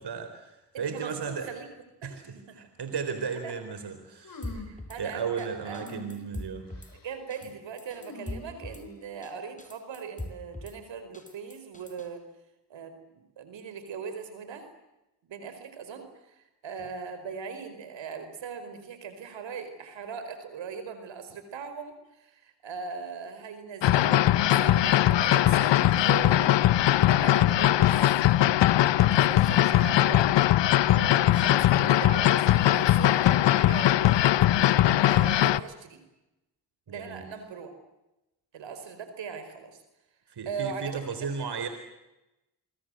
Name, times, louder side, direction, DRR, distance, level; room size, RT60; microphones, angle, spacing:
voice 1, 0.0-1.5 2.0-4.6 5.0-6.7 30.9-32.0 36.9-37.3 40.3-41.7, right 6 dB, 60° right, 9 dB, 3.9 m, -35 dB
voice 2, 0.7-1.7 2.0-2.6 3.4-3.5 4.5-5.9 6.9-12.2 12.7-14.7 15.2-26.5 26.9-27.9 29.0-30.3 31.4-31.6 31.9-34.4 35.1-36.0 36.9-37.7 38.5-39.8 40.4-41.0 41.4-41.7, right 6 dB, 80° right, 9 dB, 5.0 m, -40 dB
sound 1, 4.2-4.9 5.7-6.3 6.7-7.1 8.0-9.2, left 3 dB, 50° left, 7.6 m, -45 dB
Drum kit / Snare drum, 4.4-5.0 5.4-5.5 5.7-6.9 7.3-7.5 7.8-8.8 9.2-9.3 9.6-10.8 11.1-12.1, left 1 dB, 15° left, 6.1 m, -40 dB
sound 2, 23.8-35.6, left 13 dB, 75° left, 0.9 m, -21 dB
27.5 x 23.0 x 7.8 m, 0.95 s
supercardioid pair, 50°, 44 cm